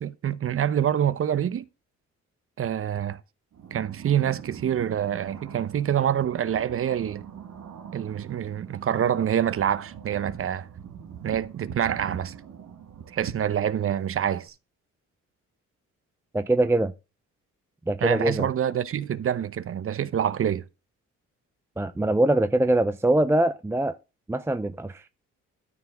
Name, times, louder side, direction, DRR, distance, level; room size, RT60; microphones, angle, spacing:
voice 1, 0.0-1.7 2.6-3.2 3.7-7.3 7.9-10.7 11.2-12.4 13.1-14.5 18.0-20.6, right 9 dB, 45° right, 0.8 m, -26 dB
sound 1, 3.5-14.5, right 8 dB, 70° right, 2.0 m, -42 dB
voice 2, 16.3-16.9 17.9-18.5 21.8-24.0 24.3-25.1, right 1 dB, 10° right, 0.5 m, -23 dB
13.0 x 4.6 x 4.8 m
cardioid pair, 90°, 30 cm